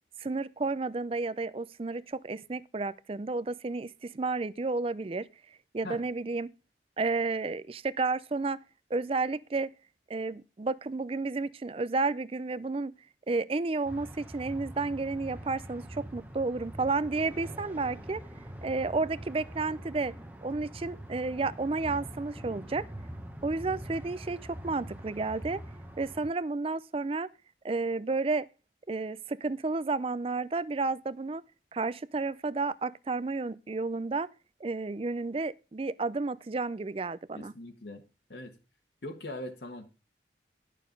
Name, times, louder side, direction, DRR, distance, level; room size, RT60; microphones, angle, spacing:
voice 1, 0.2-5.3 5.7-6.5 7.0-8.6 8.9-9.7 10.1-12.9 13.3-18.2 18.6-20.1 20.4-22.8 23.4-25.6 26.0-27.3 27.6-28.5 28.9-31.4 31.7-34.3 34.6-37.5, right 3 dB, 30° right, 0.4 m, -31 dB
sound 1, 13.8-26.3, right 1 dB, 10° right, 1.0 m, -44 dB
voice 2, 37.3-38.0 38.3-38.5 39.0-39.9, left 1 dB, 65° left, 1.4 m, -41 dB
11.0 x 6.6 x 5.2 m
head